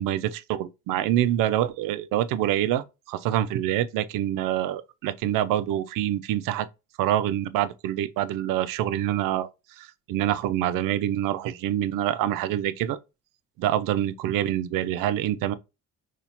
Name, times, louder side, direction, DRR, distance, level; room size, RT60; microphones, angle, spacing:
voice 1, 0.0-6.7 7.0-9.5 9.8-13.0 13.6-15.5, right 12 dB, 85° right, 0.5 m, -26 dB
2.8 x 2.4 x 4.2 m
cardioid pair, 145°, 32 cm